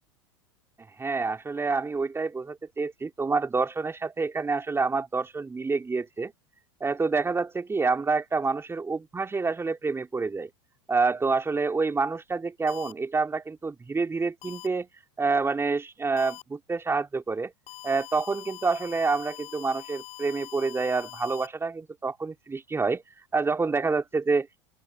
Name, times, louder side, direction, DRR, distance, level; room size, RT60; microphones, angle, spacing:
voice 1, 1.0-6.3 6.8-10.5 10.9-14.9 15.2-17.5 17.8-23.0 23.3-24.7, right 4 dB, 15° right, 3.5 m, -27 dB
sound 1, 12.7-12.9 14.4-14.7 16.2-16.4 17.7-21.5, left 17 dB, 45° left, 4.8 m, -44 dB
open air
hypercardioid pair, 95°, 16 cm